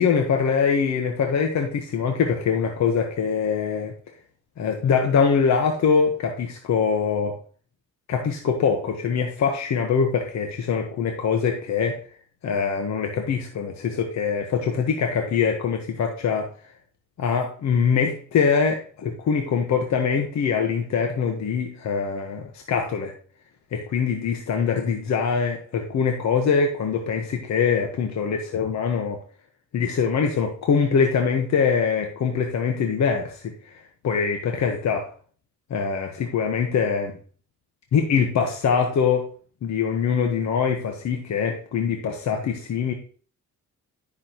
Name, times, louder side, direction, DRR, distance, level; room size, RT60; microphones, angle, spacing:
voice 1, 0.0-3.9 4.6-7.4 8.1-12.0 12.4-16.5 17.2-23.1 23.7-29.2 29.7-33.7 34.0-35.1 35.7-37.2 37.9-39.2 39.6-42.9, left 6 dB, 65° left, 3 dB, 1.3 m, -23 dB
10.0 x 6.4 x 3.0 m, 0.41 s
cardioid pair, 90°, 30 cm